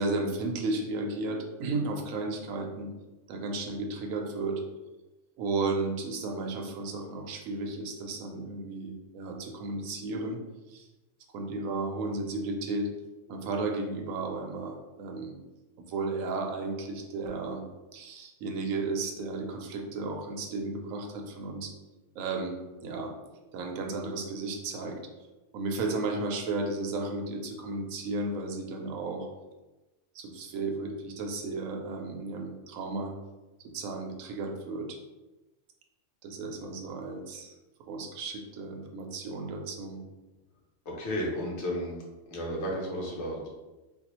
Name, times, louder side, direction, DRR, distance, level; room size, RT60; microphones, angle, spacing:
voice 1, 0.0-2.9 3.3-4.6 5.4-10.4 10.7-10.8 11.3-12.9 13.3-15.3 15.9-17.6 17.9-21.7 22.1-23.1 23.5-25.0 25.5-29.3 30.1-33.1 33.7-35.0 36.2-37.6 37.9-40.0, right 3 dB, 85° right, 2 dB, 1.0 m, -34 dB
voice 2, 40.8-42.0 42.3-43.5, equal, 60° left, -3 dB, 1.1 m, -33 dB
3.4 x 2.3 x 3.0 m, 1.1 s
omnidirectional pair, 1.4 m